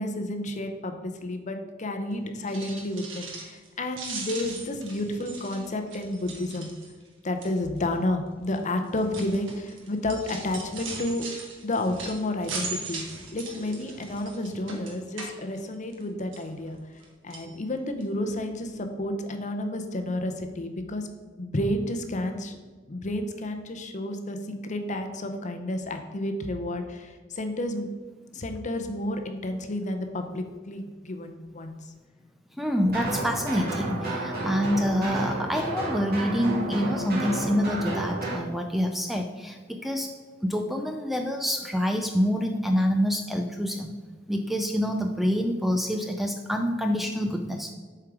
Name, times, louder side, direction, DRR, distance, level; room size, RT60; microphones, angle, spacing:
voice 1, 0.0-6.7 7.2-11.3 11.6-13.0 13.3-16.8 17.2-21.1 21.4-22.6 22.9-24.4 24.6-27.9 28.3-31.8, left 1 dB, 40° left, 6 dB, 0.7 m, -31 dB
sound 1, 2.4-3.7 3.9-7.1 7.4-7.8 8.5-16.0 16.3-17.0 17.3-17.5 18.0-18.1 18.4-18.5, right 3 dB, 85° right, 1.4 m, -39 dB
voice 2, 32.6-40.1 40.4-43.9 44.3-47.7, equal, ahead, 4 dB, 0.4 m, -27 dB
sound 2, 32.8-38.4, right 2 dB, 50° right, 2.1 m, -31 dB
7.2 x 4.6 x 4.8 m, 1.4 s
head